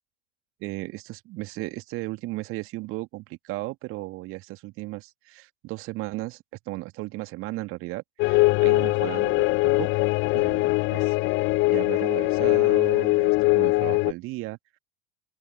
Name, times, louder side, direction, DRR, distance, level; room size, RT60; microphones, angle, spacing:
voice 1, 0.6-9.9 10.3-11.2 11.7-14.6, right 20 dB, 45° right, 2.2 m, -35 dB
sound 1, 8.2-14.1, left 24 dB, 40° left, 0.6 m, -22 dB
open air
figure-of-eight pair, 80°, 29 cm